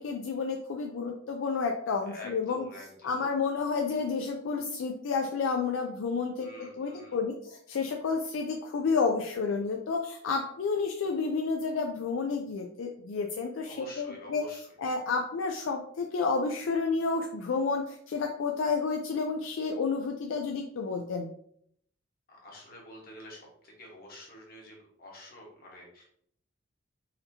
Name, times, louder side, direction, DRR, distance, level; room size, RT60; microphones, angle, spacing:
voice 1, 0.0-2.7 3.0-6.5 6.8-14.4 14.8-21.3, left 4 dB, 75° left, 2 dB, 0.4 m, -30 dB
voice 2, 2.1-3.3 6.4-7.2 13.7-14.6 22.3-26.0, left 1 dB, 45° left, -2 dB, 1.2 m, -48 dB
4.1 x 2.8 x 2.8 m, 0.66 s
head